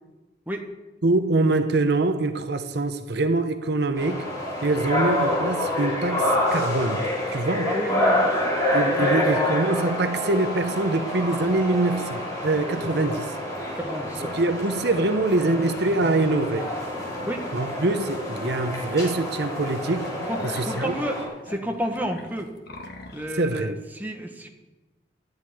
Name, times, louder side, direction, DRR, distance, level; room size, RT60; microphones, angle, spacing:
voice 1, 1.0-4.3 4.6-7.0 7.3-7.7 8.7-13.3 14.3-16.7 17.5-20.1 20.5-20.9 23.4-23.8, right 2 dB, 65° right, 0.8 m, -24 dB
sound 1, 4.0-21.2, left 1 dB, 20° left, 4.8 m, -27 dB
voice 2, 7.7-8.4 8.9-9.5 13.7-14.4 17.3-17.5 20.3-22.5 23.1-24.5, equal, 10° right, 1.4 m, -31 dB
sound 2, 18.0-18.2 18.6-18.7 19.1-19.2 19.6-23.3, left 2 dB, 60° left, 1.6 m, -41 dB
12.0 x 8.1 x 9.7 m
head